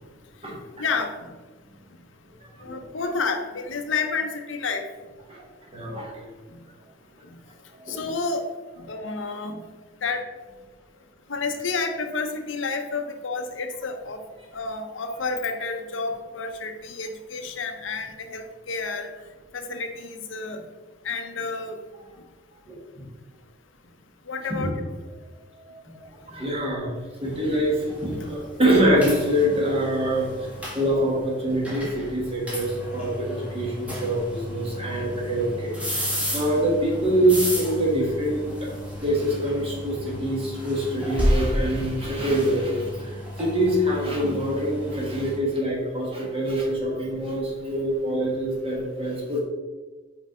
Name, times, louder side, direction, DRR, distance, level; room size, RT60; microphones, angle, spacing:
voice 1, 0.5-1.3 2.6-4.8 7.9-8.4 8.8-9.6 10.0-10.2 11.3-14.2 14.5-19.1 19.5-20.6 21.0-21.8 24.3-24.7, left 4 dB, 90° left, 6 dB, 0.7 m, -30 dB
voice 2, 5.7-6.3 7.8-8.0 22.7-22.8 24.6-24.7 25.6-25.7 26.3-26.9 27.2-30.3 30.7-35.9 36.3-38.7 39.0-49.4, right 1 dB, 30° right, -3 dB, 1.6 m, -25 dB
sound 1, 27.2-45.4, equal, 5° right, 1.5 m, -32 dB
5.4 x 4.7 x 3.8 m, 1.3 s
head